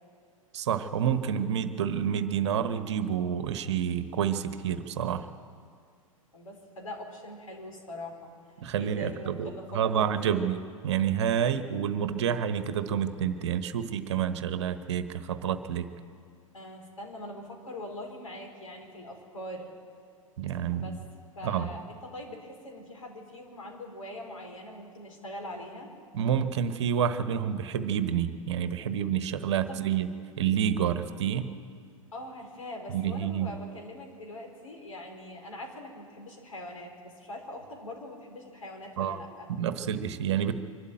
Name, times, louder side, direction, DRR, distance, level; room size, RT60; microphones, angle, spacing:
voice 1, 0.5-5.2 8.6-10.6 10.8-15.9 20.4-21.0 21.4-21.7 26.1-30.1 30.4-31.5 32.9-33.5 39.0-39.2 39.6-40.5, right 8 dB, 55° right, 11 dB, 1.2 m, -28 dB
voice 2, 6.3-8.3 8.8-10.5 16.5-19.7 20.7-21.0 21.4-25.9 29.7-29.8 32.1-39.5, left 1 dB, 70° left, 1 dB, 4.4 m, -42 dB
24.0 x 12.5 x 9.0 m, 2.2 s
figure-of-eight pair, 100°, 18 cm